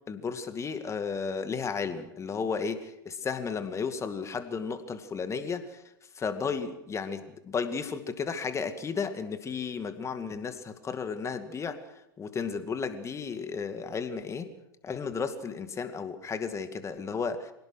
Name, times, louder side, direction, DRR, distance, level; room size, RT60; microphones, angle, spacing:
voice 1, 0.1-5.8 6.2-11.8 12.2-14.5 14.8-17.5, left 5 dB, 25° left, 9 dB, 2.3 m, -33 dB
26.0 x 18.5 x 6.4 m, 0.85 s
hypercardioid pair, 85°, 12 cm